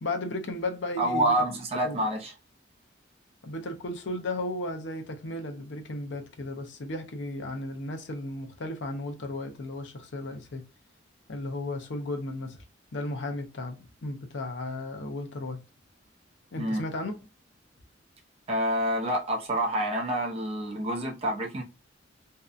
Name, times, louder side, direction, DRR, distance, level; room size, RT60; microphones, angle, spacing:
voice 1, 0.0-1.3 1.8-2.0 3.4-10.6 11.3-12.6 12.9-15.6 16.5-17.1, left 2 dB, 65° left, 0.6 m, -34 dB
voice 2, 1.0-2.3 16.6-16.8 18.5-21.6, right 1 dB, 30° right, 0.6 m, -27 dB
2.6 x 2.1 x 2.4 m
head